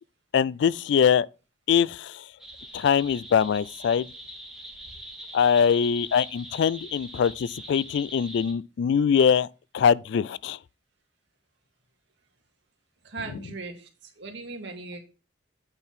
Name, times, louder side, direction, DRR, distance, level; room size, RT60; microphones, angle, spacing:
voice 1, 0.3-1.3 1.7-2.2 2.7-4.1 5.3-9.5 9.7-10.6, left 7 dB, 65° left, 0.3 m, -22 dB
sound 1, 2.4-8.5, right 1 dB, 5° right, 2.0 m, -43 dB
voice 2, 13.0-15.0, right 3 dB, 65° right, 2.2 m, -38 dB
8.7 x 4.6 x 5.7 m
head